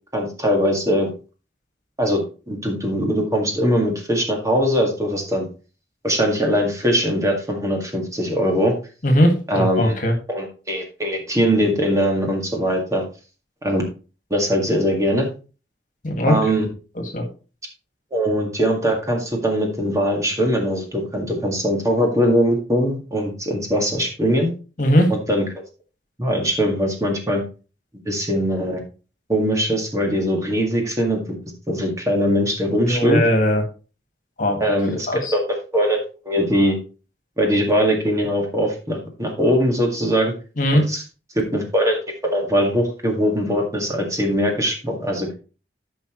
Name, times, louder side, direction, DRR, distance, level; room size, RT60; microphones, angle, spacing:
voice 1, 0.1-1.1 2.0-5.5 6.0-8.7 9.5-9.9 10.3-13.0 13.6-13.8 14.3-15.3 16.2-16.7 18.1-24.5 25.1-25.5 26.2-27.4 28.1-28.8 29.3-31.2 31.7-33.2 34.6-36.0 36.2-36.8 37.4-40.3 40.7-41.0 41.4-42.0 42.2-45.3, equal, 20° right, 1 dB, 2.0 m, -21 dB
voice 2, 9.0-10.1 16.0-16.3 17.1-17.2 24.8-25.1 32.9-33.6 34.4-34.7 35.1-35.3 40.6-40.8, equal, 50° left, 4 dB, 1.9 m, -18 dB
13.0 x 5.6 x 3.1 m, 0.34 s
head